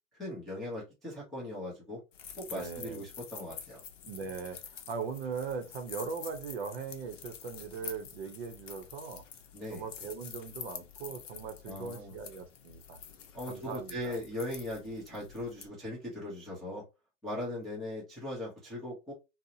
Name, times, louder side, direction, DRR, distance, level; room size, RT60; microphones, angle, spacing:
voice 1, 0.1-2.0 2.4-3.8 9.5-9.8 11.7-12.1 13.3-16.8 17.2-19.1, left 1 dB, ahead, 0.5 m, -39 dB
sound 1, 2.1-15.7, left 8 dB, 65° left, 0.7 m, -48 dB
voice 2, 2.5-3.0 4.0-9.2 9.7-13.0 13.4-14.2, right 5 dB, 50° right, 0.6 m, -40 dB
2.7 x 2.0 x 2.7 m
hypercardioid pair, 130°, 41 cm